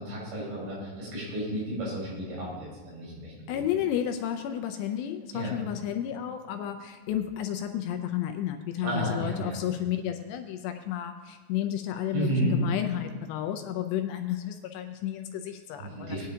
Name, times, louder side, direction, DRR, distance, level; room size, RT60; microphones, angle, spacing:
voice 1, 0.0-3.6 5.3-5.5 8.8-9.6 12.1-12.5 15.8-16.2, right 1 dB, 70° right, -6 dB, 6.9 m, -32 dB
voice 2, 3.5-16.2, left 11 dB, 80° left, 6 dB, 2.6 m, -32 dB
19.5 x 10.5 x 2.8 m, 1.3 s
omnidirectional pair, 5.2 m